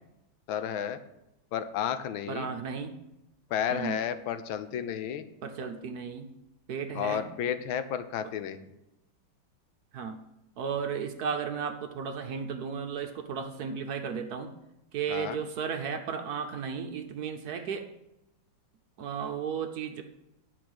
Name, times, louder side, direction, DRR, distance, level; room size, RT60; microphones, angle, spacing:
voice 1, 0.5-1.0 1.5-2.5 3.5-5.2 6.9-8.7 15.1-15.4, left 9 dB, 85° left, 11 dB, 1.5 m, -32 dB
voice 2, 2.3-3.0 3.7-4.0 5.4-6.3 6.7-7.3 9.9-10.2 10.6-14.5 14.9-17.9 19.0-20.0, right 6 dB, 65° right, 6 dB, 1.0 m, -34 dB
10.0 x 4.5 x 7.8 m, 0.90 s
omnidirectional pair, 2.1 m